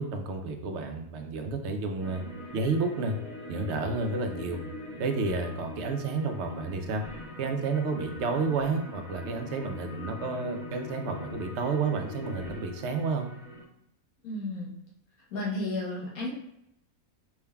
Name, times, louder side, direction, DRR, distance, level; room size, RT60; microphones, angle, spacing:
voice 1, 0.0-2.2 2.5-3.2 3.5-4.6 5.0-7.0 7.4-13.3, right 4 dB, 65° right, 4 dB, 0.8 m, -30 dB
sound 1, 2.0-13.6, left 1 dB, 5° right, 1.2 m, -42 dB
voice 2, 14.2-14.7 15.3-16.4, left 2 dB, 85° left, -5 dB, 1.5 m, -33 dB
5.2 x 3.5 x 2.3 m, 0.79 s
omnidirectional pair, 1.5 m